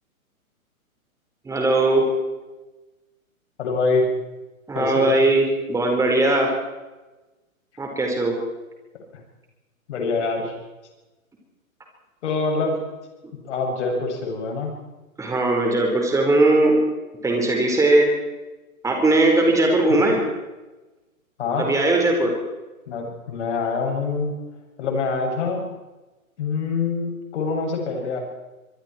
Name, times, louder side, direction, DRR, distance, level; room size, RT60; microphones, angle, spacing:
voice 1, 1.4-2.1 4.7-6.5 7.8-8.3 15.2-16.8 17.2-18.1 18.8-20.2 21.6-22.3, right 2 dB, 5° right, 1 dB, 4.7 m, -19 dB
voice 2, 3.6-4.1 4.7-5.1 8.9-9.0 9.9-10.6 12.2-12.8 13.4-14.7 19.9-20.0 21.4-21.7 22.9-24.4 24.8-25.7 26.4-28.2, left 4 dB, 55° left, 1 dB, 7.4 m, -25 dB
25.5 x 23.5 x 4.6 m, 1.1 s
hypercardioid pair, 130°, 42 cm